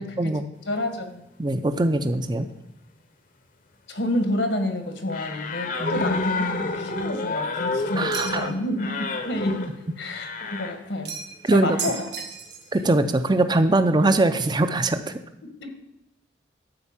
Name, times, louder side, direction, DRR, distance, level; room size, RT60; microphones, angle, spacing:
voice 1, 0.0-0.3 0.7-1.2 3.9-9.6 10.0-11.2 11.5-12.0 12.8-12.9 15.4-15.7, left 1 dB, 75° left, 6 dB, 1.5 m, -29 dB
voice 2, 1.4-2.5 5.8-6.1 8.0-8.5 11.4-11.8 12.7-15.1, right 2 dB, 20° right, 10 dB, 0.5 m, -22 dB
sound 1, 5.1-10.8 11.7-12.0, left 3 dB, 45° left, 0.8 m, -29 dB
sound 2, 8.1-8.6 11.0-11.4 11.8-12.8, right 6 dB, 60° right, 1.4 m, -34 dB
13.0 x 4.5 x 7.2 m, 0.89 s
head